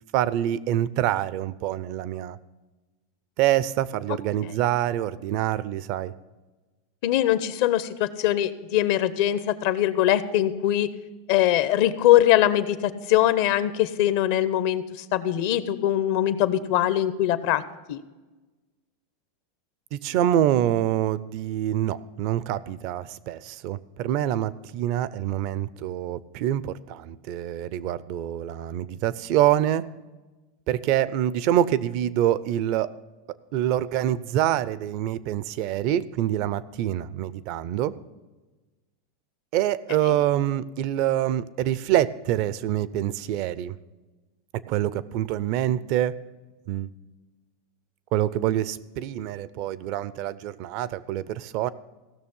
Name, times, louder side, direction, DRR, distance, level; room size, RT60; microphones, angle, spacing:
voice 1, 0.1-2.4 3.4-6.1 19.9-29.8 30.7-32.9 33.5-37.9 39.5-43.7 44.7-46.2 46.7-46.9 48.1-51.7, right 12 dB, 55° right, 18 dB, 0.5 m, -26 dB
voice 2, 7.0-10.9 11.3-17.6 17.9-18.0, left 13 dB, 65° left, 14 dB, 0.7 m, -22 dB
16.0 x 6.4 x 5.4 m, 1.2 s
supercardioid pair, 120°, 0 cm